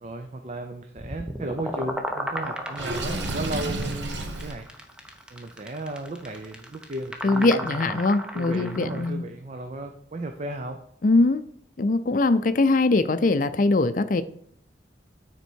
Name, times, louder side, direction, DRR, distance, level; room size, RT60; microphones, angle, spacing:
voice 1, 0.0-4.7 5.3-8.0 8.3-10.8, right 1 dB, 40° right, 5 dB, 0.6 m, -35 dB
sound 1, 1.0-9.1, equal, 5° right, 0.7 m, -35 dB
Water / Sink (filling or washing), 2.8-4.5, right 2 dB, 75° right, 1.1 m, -30 dB
voice 2, 7.2-9.2 11.0-11.4 11.8-14.2, left 2 dB, 45° left, 12 dB, 0.5 m, -21 dB
9.7 x 4.4 x 4.5 m, 0.69 s
head